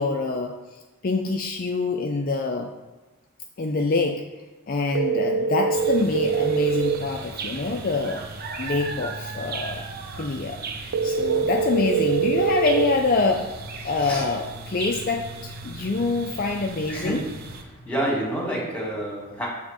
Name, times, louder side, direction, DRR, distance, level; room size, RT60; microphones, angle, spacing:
voice 1, 0.0-2.7 3.6-4.2 4.7-8.2 8.6-9.9 10.2-13.5 13.8-17.2, left 3 dB, 40° left, 2 dB, 0.5 m, -26 dB
sound 1, 4.9-7.0 10.9-12.9, right 6 dB, 80° right, 0.5 m, -23 dB
sound 2, 5.7-17.6, right 3 dB, 45° right, 0.8 m, -37 dB
voice 2, 17.6-19.5, right 1 dB, 5° left, -4 dB, 1.9 m, -28 dB
7.3 x 3.7 x 6.3 m, 1.2 s
head